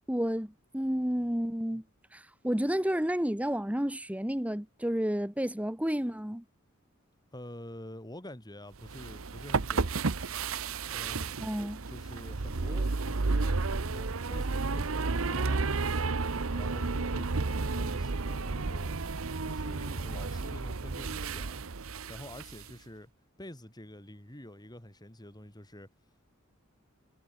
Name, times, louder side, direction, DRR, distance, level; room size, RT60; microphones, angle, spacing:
voice 1, 0.1-1.8 2.1-6.4 11.4-11.8, equal, 5° right, 1.6 m, -31 dB
voice 2, 7.3-10.1 10.8-11.5 11.9-15.6 16.3-19.0 19.4-21.6 22.1-23.1 23.4-25.9, left 1 dB, 20° left, 5.4 m, -47 dB
sound 1, 8.8-22.7, right 3 dB, 80° right, 1.0 m, -32 dB
head